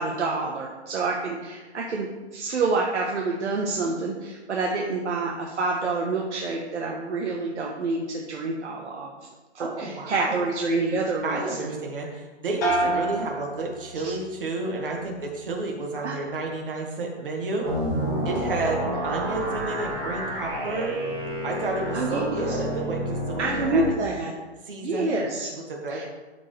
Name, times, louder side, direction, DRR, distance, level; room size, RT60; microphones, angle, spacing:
voice 1, 0.0-9.1 9.5-11.7 12.9-13.1 14.0-14.1 16.0-16.1 21.9-22.6 23.4-24.3 24.8-25.5 25.9-26.0, right 3 dB, 80° right, -1 dB, 1.1 m, -27 dB
voice 2, 9.6-10.4 11.2-17.7 18.2-20.9 21.4-23.9 24.7-25.1 25.5-26.0, right 2 dB, 50° right, 1 dB, 1.6 m, -31 dB
sound 1, 12.6-14.3 14.7-15.3, right 1 dB, 15° left, 1.0 m, -29 dB
sound 2, 17.6-23.9, right 1 dB, 20° right, 1.2 m, -30 dB
12.0 x 4.5 x 3.2 m, 1.2 s
hypercardioid pair, 180°, 34 cm